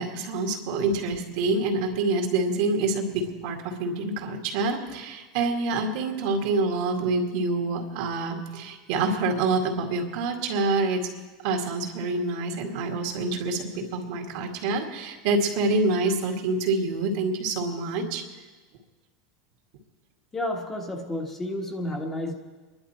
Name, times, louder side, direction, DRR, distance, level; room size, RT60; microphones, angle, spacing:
voice 1, 0.0-11.1 11.4-18.2, right 3 dB, 60° right, 3 dB, 2.2 m, -26 dB
voice 2, 20.3-22.3, left 1 dB, 15° left, 2 dB, 1.3 m, -31 dB
24.0 x 11.5 x 4.4 m, 1.3 s
supercardioid pair, 160°, 2 cm